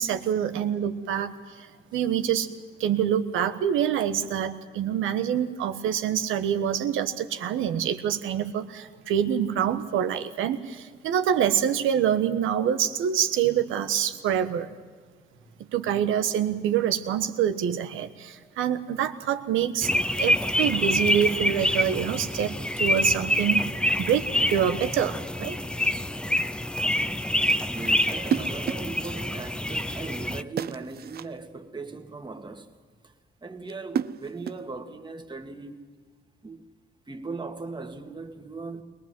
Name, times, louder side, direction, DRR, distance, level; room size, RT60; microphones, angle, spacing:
voice 1, 0.0-2.5 2.8-14.7 15.7-19.9 20.1-25.6, right 9 dB, 85° right, 1.3 m, -26 dB
sound 1, 19.8-30.4, left 1 dB, 5° left, 0.6 m, -26 dB
voice 2, 27.7-32.7 33.0-33.1 33.4-35.8 36.4-36.6 37.1-38.8, right 3 dB, 25° right, 2.1 m, -38 dB
sound 2, 28.2-29.0 30.6-31.4 33.7-34.7, right 8 dB, 50° right, 0.6 m, -31 dB
22.0 x 20.0 x 7.7 m
cardioid pair, 90°, 20 cm